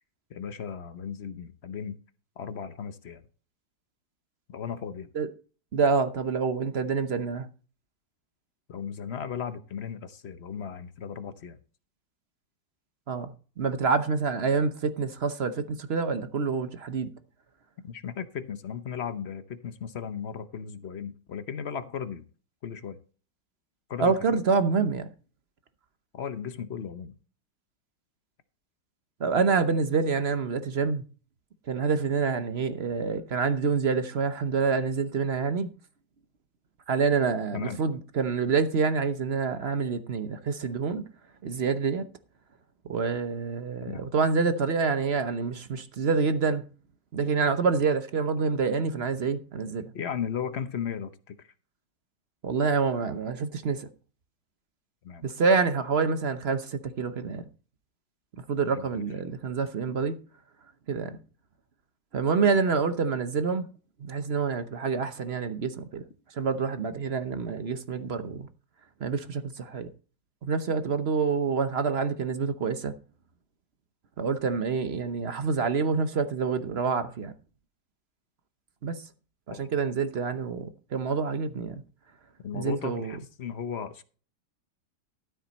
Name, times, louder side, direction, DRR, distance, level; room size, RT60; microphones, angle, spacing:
voice 1, 0.3-2.0 2.4-3.2 4.5-5.1 8.7-11.6 17.8-22.2 22.6-23.0 23.9-24.1 26.1-27.2 37.5-37.8 43.8-44.1 49.9-51.5 55.0-55.2 58.7-58.9 79.5-79.6 82.4-84.0, left 7 dB, 50° left, 0.8 m, -36 dB
voice 2, 5.7-7.5 13.1-17.1 24.0-25.1 29.2-31.0 31.7-35.7 36.9-41.0 41.4-42.1 42.8-46.6 47.1-49.9 52.4-53.9 55.2-57.5 58.5-60.2 60.9-61.2 62.1-63.7 64.0-66.0 66.3-68.5 69.0-69.9 70.4-72.9 74.2-77.3 78.8-79.0 79.5-81.7 82.5-83.1, right 5 dB, 50° right, 0.8 m, -27 dB
13.0 x 7.5 x 4.1 m
omnidirectional pair, 2.0 m